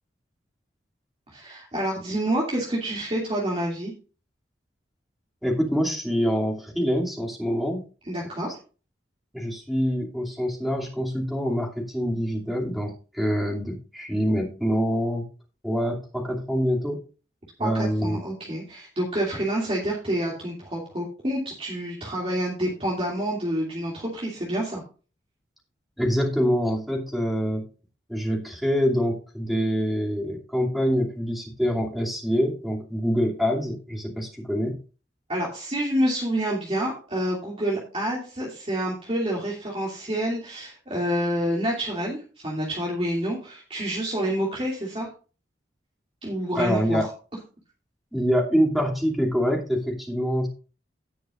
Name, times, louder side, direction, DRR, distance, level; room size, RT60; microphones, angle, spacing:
voice 1, 1.3-3.9 8.1-8.5 17.6-24.8 35.3-45.1 46.2-47.1, right 1 dB, 30° right, -4 dB, 2.7 m, -28 dB
voice 2, 5.4-7.8 9.3-15.2 15.6-17.0 17.6-18.2 26.0-27.7 28.1-34.8 46.6-47.1 48.1-50.5, equal, ahead, -2 dB, 2.7 m, -25 dB
17.5 x 6.5 x 2.5 m, 0.35 s
head